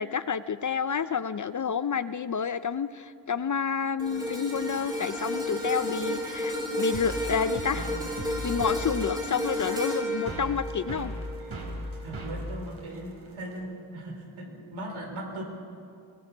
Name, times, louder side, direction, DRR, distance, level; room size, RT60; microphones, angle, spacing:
voice 1, 0.0-7.9 8.2-11.1, left 6 dB, 40° left, 14 dB, 0.5 m, -29 dB
sound 1, 4.0-12.3 12.8-13.0, left 1 dB, 10° right, 3.9 m, -32 dB
sound 2, 6.9-13.6, equal, 50° right, 4.2 m, -38 dB
voice 2, 12.0-15.4, right 1 dB, 75° right, 1 dB, 4.3 m, -38 dB
22.0 x 20.0 x 6.1 m, 2.4 s
wide cardioid pair, 120°, 48 cm